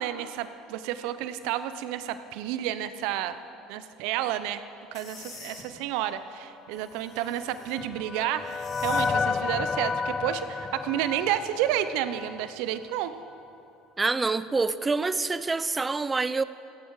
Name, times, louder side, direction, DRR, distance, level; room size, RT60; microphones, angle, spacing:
voice 1, 0.0-3.4 3.7-4.6 4.9-13.1, right 12 dB, 70° right, 11 dB, 0.9 m, -30 dB
sound 1, 4.9-5.6 6.7-7.9 8.4-9.1, left 4 dB, 55° left, 3.7 m, -47 dB
sound 2, 7.2-12.6, left 5 dB, 30° left, 0.4 m, -31 dB
voice 2, 14.0-16.4, right 3 dB, 20° right, 15 dB, 0.7 m, -26 dB
18.0 x 15.5 x 4.9 m, 2.5 s
hypercardioid pair, 75°, 0 cm